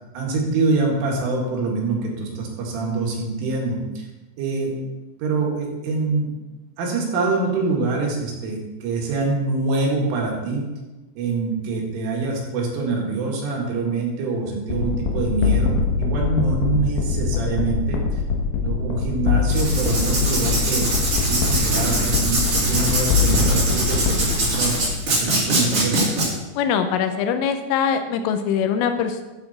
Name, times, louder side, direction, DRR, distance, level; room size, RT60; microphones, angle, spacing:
voice 1, 0.1-4.0 4.4-4.7 5.2-6.3 6.8-10.7 11.2-18.0 18.6-20.9 21.3-24.8 25.1-26.1, right 3 dB, 75° right, -1 dB, 4.6 m, -25 dB
sound 1, 14.7-25.1, left 5 dB, 70° left, 3.5 m, -23 dB
Writing, 19.5-26.3, right 2 dB, 35° right, 3.0 m, -23 dB
voice 2, 26.6-29.2, left 7 dB, 85° left, 8 dB, 3.4 m, -22 dB
14.5 x 8.0 x 4.3 m, 1.1 s
omnidirectional pair, 5.8 m